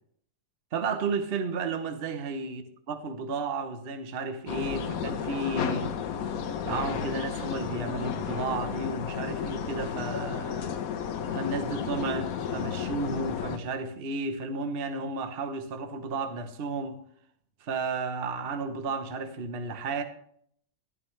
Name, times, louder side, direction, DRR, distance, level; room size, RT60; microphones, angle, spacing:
voice 1, 0.7-2.6 2.9-6.0 6.6-10.7 11.3-17.0 17.6-20.0, right 3 dB, 45° right, 0.9 m, -33 dB
sound 1, 4.5-13.6, left 8 dB, 60° left, 1.1 m, -33 dB
12.5 x 11.5 x 3.2 m
omnidirectional pair, 1.9 m